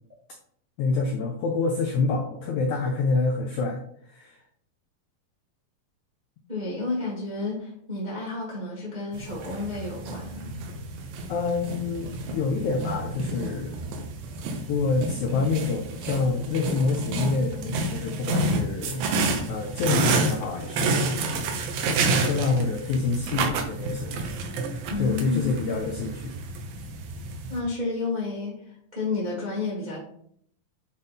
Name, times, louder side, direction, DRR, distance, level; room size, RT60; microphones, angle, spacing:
voice 1, 0.8-3.8 4.1-4.4 11.3-13.8 14.7-19.0 19.5-24.2 25.0-26.3, left 4 dB, 85° left, 2 dB, 1.7 m, -27 dB
voice 2, 6.5-10.5 24.9-25.5 27.5-30.0, left 3 dB, 35° right, -6 dB, 0.7 m, -31 dB
sound 1, 9.1-27.6, right 3 dB, 75° right, 2.5 m, -29 dB
8.0 x 4.1 x 3.5 m, 0.65 s
omnidirectional pair, 4.4 m